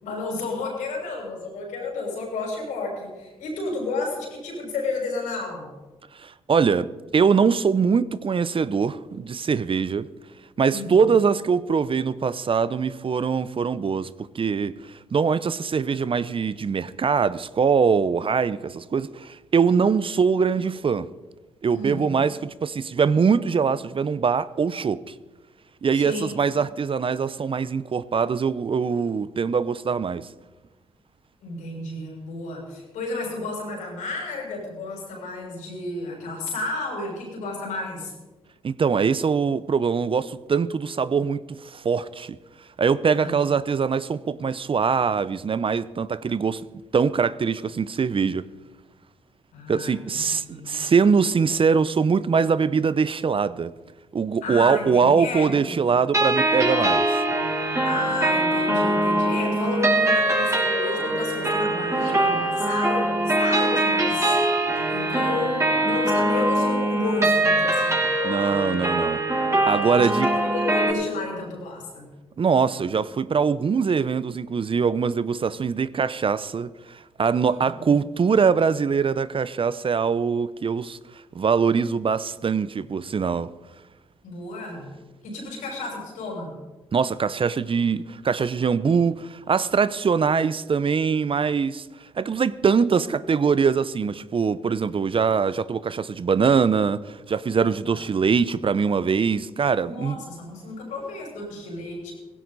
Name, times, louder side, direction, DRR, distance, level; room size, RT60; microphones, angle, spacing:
voice 1, 0.0-5.7 10.7-11.0 21.7-22.1 26.0-26.3 31.4-38.1 43.2-43.4 49.5-50.8 54.4-55.8 57.8-64.4 64.9-68.1 69.9-72.1 77.4-77.9 84.2-84.9 85.2-86.5 99.8-102.1, left 3 dB, 80° left, 6.3 m, -32 dB
voice 2, 6.1-10.1 10.6-21.1 21.6-25.1 25.8-30.3 38.6-42.4 42.8-46.7 46.9-48.5 49.7-53.7 54.1-57.1 68.2-69.2 69.7-70.3 72.4-83.5 86.9-100.2, right 6 dB, 45° right, 0.7 m, -23 dB
sound 1, 56.1-70.9, right 1 dB, 25° right, 5.1 m, -22 dB
17.5 x 16.0 x 4.1 m
hypercardioid pair, 45°, 13 cm